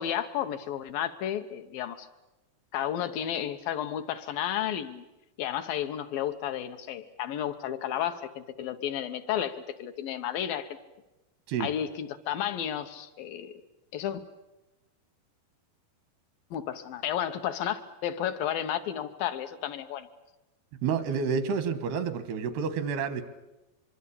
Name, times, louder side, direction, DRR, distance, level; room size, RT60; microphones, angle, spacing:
voice 1, 0.0-2.1 2.7-5.0 5.4-10.8 11.6-13.6 13.9-14.2 16.5-20.1, left 10 dB, 70° left, 9 dB, 2.6 m, -32 dB
voice 2, 20.8-23.2, right 6 dB, 90° right, 11 dB, 3.6 m, -29 dB
24.5 x 23.5 x 8.6 m, 0.99 s
omnidirectional pair, 4.5 m